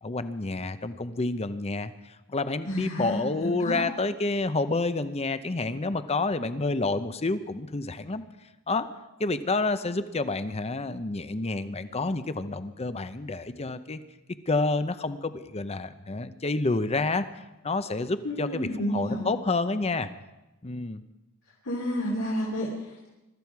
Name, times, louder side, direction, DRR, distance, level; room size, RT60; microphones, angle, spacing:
voice 1, 0.0-1.9 2.3-8.2 8.7-8.9 9.2-14.0 14.5-17.3 17.6-18.7 18.9-20.1 20.6-21.0, left 3 dB, 30° left, 11 dB, 0.8 m, -29 dB
voice 2, 2.6-3.9 18.2-19.3 21.6-23.1, equal, 75° left, -4 dB, 3.3 m, -31 dB
22.5 x 13.5 x 4.7 m, 1.0 s
head